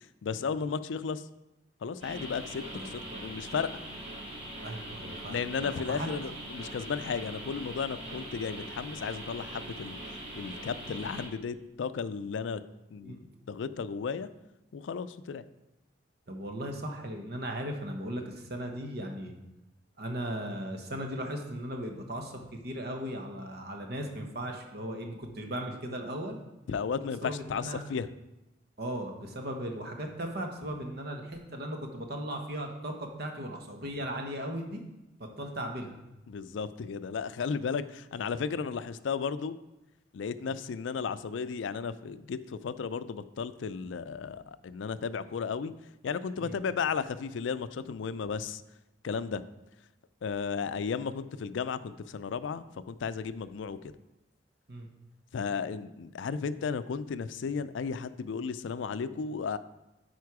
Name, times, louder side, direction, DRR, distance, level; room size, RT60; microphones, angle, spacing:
voice 1, 0.2-1.2 1.8-3.7 5.3-10.0 10.3-12.6 12.9-13.2 13.5-14.3 14.7-15.4 26.7-28.1 36.3-39.6 40.1-45.7 46.0-48.6 49.0-49.4 50.2-53.9 55.3-59.6, left 5 dB, 80° left, 14 dB, 0.4 m, -34 dB
sound 1, 2.0-11.3, right 1 dB, 35° right, 2.9 m, -42 dB
voice 2, 2.7-3.3 4.6-6.1 13.0-13.2 16.3-19.3 20.0-22.3 22.6-26.4 27.2-27.8 28.8-34.8 35.2-35.9 40.4-40.5 46.4-46.6 54.7-54.9, right 1 dB, 55° right, 3 dB, 1.1 m, -37 dB
9.4 x 4.4 x 4.8 m, 0.95 s
head